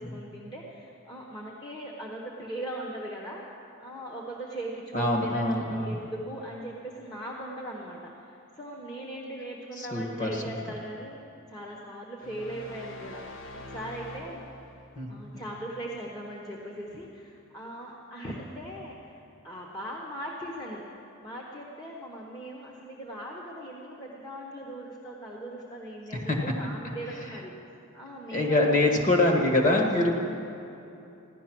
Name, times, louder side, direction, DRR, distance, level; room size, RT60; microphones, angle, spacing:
voice 1, 0.0-3.4 3.8-11.2 11.5-13.4 13.7-14.4 15.1-20.9 21.2-27.5 27.9-29.0, right 1 dB, 20° left, -3 dB, 1.1 m, -39 dB
voice 2, 4.9-6.0 9.8-10.5 14.9-15.4 26.1-26.4 28.3-30.1, left 1 dB, 35° left, 2 dB, 1.5 m, -25 dB
sound 1, 12.2-15.0, left 1 dB, 70° left, 1.2 m, -44 dB
15.5 x 11.0 x 6.1 m, 2.8 s
head